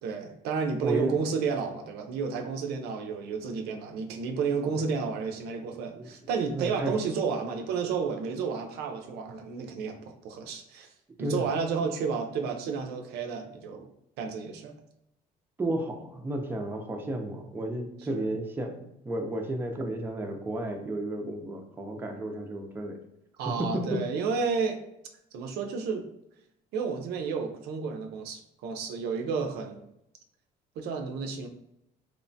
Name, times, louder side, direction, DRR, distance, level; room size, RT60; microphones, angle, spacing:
voice 1, 0.0-10.9 11.2-13.9 14.2-14.8 18.1-18.2 23.4-24.8 25.3-26.0 26.7-29.8 30.8-31.5, right 5 dB, 75° right, 4 dB, 0.4 m, -31 dB
voice 2, 0.8-1.2 6.0-6.1 6.5-6.9 11.2-11.4 15.6-23.0 23.4-24.1, right 1 dB, 10° right, 3 dB, 0.4 m, -32 dB
2.9 x 2.1 x 2.6 m, 0.81 s
cardioid pair, 110°, 17 cm